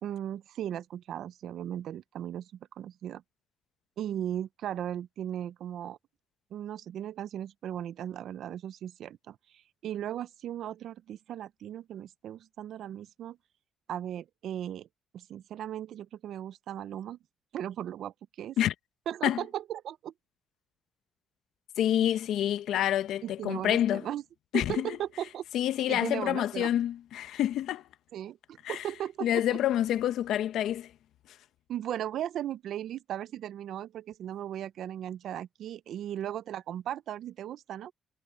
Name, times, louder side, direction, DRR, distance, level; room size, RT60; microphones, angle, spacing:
voice 1, 0.0-3.2 4.0-6.0 6.5-13.4 13.9-14.9 15.1-17.2 17.5-18.6 19.1-20.1 23.2-24.2 24.5-25.4 25.9-26.7 28.1-29.4 31.7-37.9, right 11 dB, 75° right, 0.4 m, -37 dB
voice 2, 21.8-24.0 24.5-25.0 25.5-27.8 28.6-28.8 29.2-30.9, left 11 dB, 80° left, 1.0 m, -27 dB
cardioid pair, 90°, 0 cm